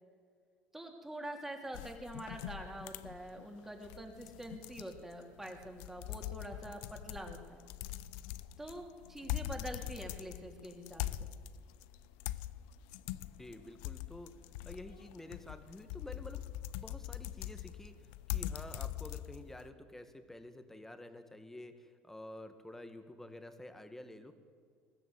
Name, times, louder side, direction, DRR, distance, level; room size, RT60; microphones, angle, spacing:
voice 1, 0.7-7.6 8.6-11.3, right 1 dB, 10° right, 2 dB, 3.4 m, -45 dB
sound 1, 1.7-19.7, left 13 dB, 80° left, 0.6 m, -43 dB
voice 2, 13.4-14.4 14.7-16.5 16.8-24.3, left 1 dB, 10° left, 9 dB, 1.9 m, -50 dB
20.5 x 15.0 x 8.2 m, 2.1 s
supercardioid pair, 95°, 4 cm